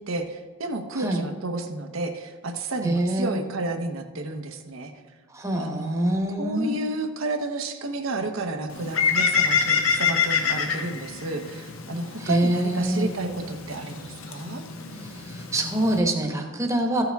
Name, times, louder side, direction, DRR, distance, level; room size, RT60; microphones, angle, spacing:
voice 1, 0.1-4.9 5.6-14.6, right 2 dB, 75° right, 4 dB, 0.8 m, -31 dB
voice 2, 2.8-3.4 5.3-6.8 12.2-13.1 14.9-17.0, right 1 dB, 15° right, 1 dB, 1.0 m, -25 dB
Bird, 8.7-16.0, left 6 dB, 85° left, 1.0 m, -27 dB
13.5 x 6.8 x 3.5 m, 1.4 s
head